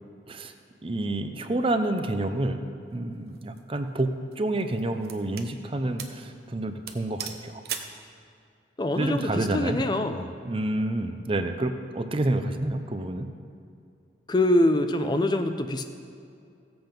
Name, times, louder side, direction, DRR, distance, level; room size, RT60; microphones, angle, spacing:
voice 1, 0.8-7.6 9.0-9.9 10.4-13.3, right 1 dB, 30° right, 8 dB, 0.6 m, -29 dB
sound 1, 3.3-3.6 4.3-5.5 6.0-6.2 6.5-6.6 6.9-8.0, right 8 dB, 60° right, 0.8 m, -38 dB
voice 2, 8.8-10.3 14.3-15.9, left 1 dB, 25° left, 7 dB, 0.4 m, -24 dB
15.5 x 7.8 x 5.3 m, 2.4 s
head